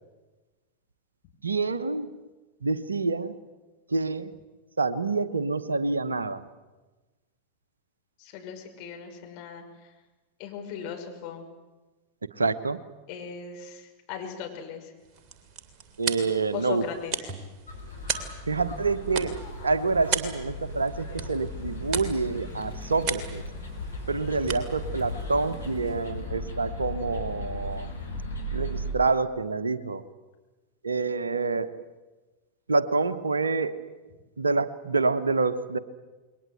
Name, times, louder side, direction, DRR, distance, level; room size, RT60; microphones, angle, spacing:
voice 1, 1.4-2.2 2.6-3.4 3.9-4.4 4.8-6.4 12.4-12.8 16.0-16.9 18.5-23.4 24.1-27.9 28.5-30.0 30.8-31.8 32.7-33.9 34.4-35.8, right 3 dB, 75° right, 14 dB, 1.1 m, -27 dB
voice 2, 8.2-9.9 10.4-11.5 13.1-14.9 16.5-17.3, left 7 dB, 45° left, 2 dB, 5.7 m, -38 dB
sound 1, 15.0-26.2, right 6 dB, 35° right, 2.9 m, -37 dB
sound 2, 17.7-28.9, left 1 dB, 80° left, 5.5 m, -37 dB
29.0 x 21.5 x 7.9 m, 1.2 s
figure-of-eight pair, 90°, 0 cm